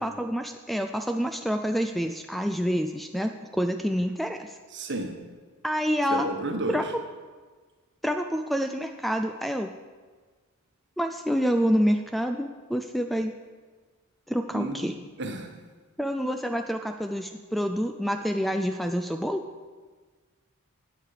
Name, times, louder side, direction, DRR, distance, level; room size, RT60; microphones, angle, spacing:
voice 1, 0.0-4.5 5.6-6.3 6.7-6.8 8.0-9.7 11.0-13.3 14.3-15.0 16.0-19.4, equal, ahead, 6 dB, 0.3 m, -27 dB
voice 2, 4.7-5.1 6.1-6.8 14.5-14.9 15.2-15.5, right 2 dB, 55° right, 4 dB, 1.3 m, -31 dB
12.0 x 8.4 x 5.0 m, 1.4 s
head